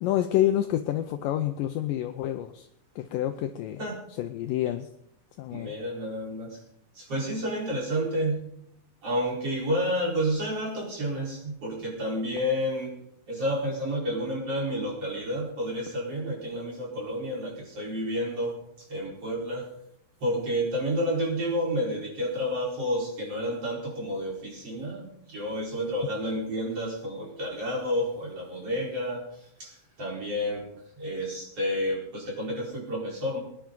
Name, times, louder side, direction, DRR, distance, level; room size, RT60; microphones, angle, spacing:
voice 1, 0.0-2.7 3.0-3.8 4.2-4.9 5.4-5.7, left 12 dB, 80° left, 7 dB, 2.1 m, -28 dB
voice 2, 5.5-6.6 7.0-8.4 9.0-13.0 13.3-18.6 18.9-19.7 20.2-30.6 31.0-33.4, equal, 40° right, -3 dB, 5.5 m, -30 dB
24.0 x 10.5 x 3.8 m, 0.72 s
omnidirectional pair, 4.5 m